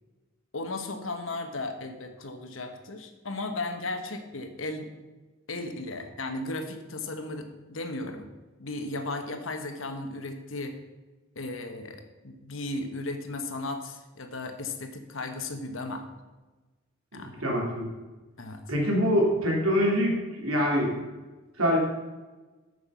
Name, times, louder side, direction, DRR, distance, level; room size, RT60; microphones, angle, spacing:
voice 1, 0.5-4.9 5.5-8.3 8.6-10.8 11.3-16.1 17.1-17.4 18.4-18.6, left 2 dB, 70° left, 6 dB, 1.2 m, -35 dB
voice 2, 17.1-17.9 18.7-20.1 20.4-20.9 21.6-21.8, equal, 90° right, -2 dB, 3.0 m, -24 dB
9.0 x 6.8 x 5.6 m, 1.2 s
head